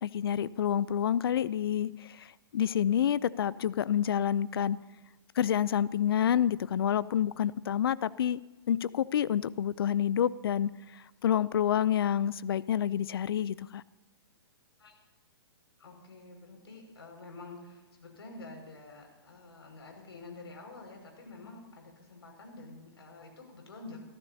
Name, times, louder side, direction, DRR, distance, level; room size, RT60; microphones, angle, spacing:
voice 1, 0.0-4.8 5.4-8.4 8.7-13.8, left 9 dB, 70° left, 19 dB, 0.5 m, -28 dB
voice 2, 15.8-24.0, left 3 dB, 85° left, 1 dB, 5.8 m, -48 dB
23.0 x 15.0 x 2.8 m, 1.1 s
hypercardioid pair, 130°, 13 cm